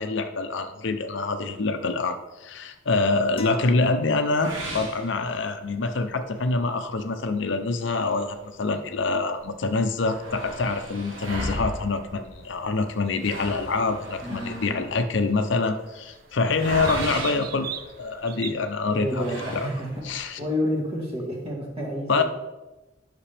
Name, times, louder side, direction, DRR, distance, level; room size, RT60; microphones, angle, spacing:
voice 1, 0.0-17.7 18.0-19.3 19.5-19.7 20.0-20.4 22.1-22.2, left 3 dB, 65° left, 8 dB, 0.6 m, -26 dB
sound 1, 3.4-4.9, left 2 dB, 30° left, 0.8 m, -41 dB
sound 2, 4.3-5.8 6.3-6.4 6.8-6.9 7.7-9.0 9.4-9.5 9.7-18.4 19.1-20.2, right 1 dB, 80° right, 1.7 m, -36 dB
sound 3, 12.4-18.5, right 9 dB, 50° right, 0.5 m, -42 dB
voice 2, 14.2-14.9 18.9-22.2, equal, 30° right, -2 dB, 1.9 m, -30 dB
10.0 x 5.9 x 3.4 m, 1.1 s
head